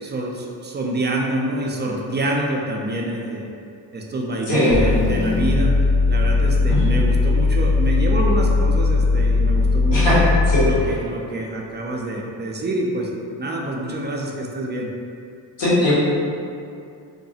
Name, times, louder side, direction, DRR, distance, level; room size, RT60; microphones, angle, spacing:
voice 1, 0.0-3.4 3.9-5.7 6.1-10.2 10.6-13.1 13.4-14.9, right 1 dB, 25° right, -1 dB, 0.3 m, -26 dB
voice 2, 4.5-4.9 6.7-6.8 9.9-10.9 15.6-15.9, left 1 dB, 65° left, -10 dB, 1.4 m, -19 dB
sound 1, 4.7-10.9, left 3 dB, 45° left, 0.5 m, -18 dB
2.8 x 2.2 x 2.7 m, 2.5 s
supercardioid pair, 50°, 48 cm